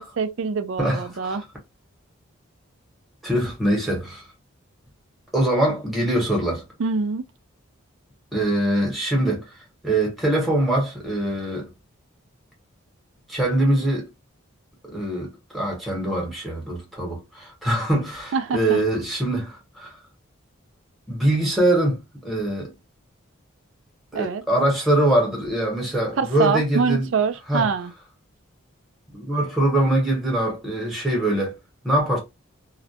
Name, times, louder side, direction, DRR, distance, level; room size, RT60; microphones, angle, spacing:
voice 1, 0.0-1.4 6.8-7.2 18.3-18.8 24.1-24.4 26.2-27.9, right 5 dB, 65° right, 0.4 m, -24 dB
voice 2, 0.8-1.4 3.2-4.2 5.3-6.6 8.3-9.5 9.8-11.7 13.3-14.1 14.8-20.0 21.1-22.0 22.2-22.7 24.1-27.1 27.5-27.7 29.1-31.5 31.8-32.2, right 1 dB, ahead, 1.0 m, -23 dB
2.3 x 2.1 x 2.7 m
head